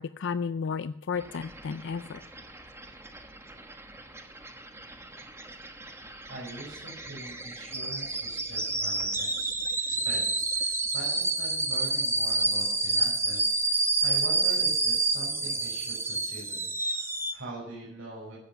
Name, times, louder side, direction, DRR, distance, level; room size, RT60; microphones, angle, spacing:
voice 1, 0.0-2.2, left 5 dB, 65° left, 13 dB, 0.4 m, -33 dB
sound 1, 1.2-17.3, right 3 dB, 15° right, 1.2 m, -29 dB
voice 2, 6.3-9.5 9.9-18.3, right 1 dB, 90° right, -5 dB, 5.7 m, -43 dB
15.0 x 8.0 x 7.0 m, 0.74 s
head